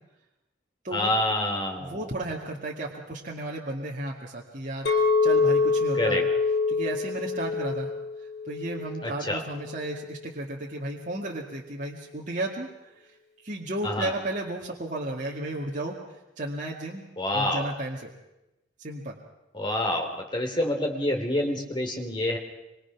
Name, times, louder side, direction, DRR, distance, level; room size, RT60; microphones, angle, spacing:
voice 1, 0.9-2.1 5.9-6.2 9.0-9.4 13.8-14.1 17.2-17.7 19.5-22.4, left 1 dB, 25° left, 3 dB, 3.0 m, -27 dB
voice 2, 1.8-6.3 6.7-7.9 8.5-12.9 13.4-15.9 16.4-17.1 17.3-18.1 18.8-19.2, right 1 dB, 40° right, -3 dB, 2.2 m, -33 dB
Chink clink, 4.9-9.2 9.7-10.0, left 4 dB, 55° left, 2.4 m, -25 dB
25.0 x 23.0 x 6.0 m, 0.98 s
head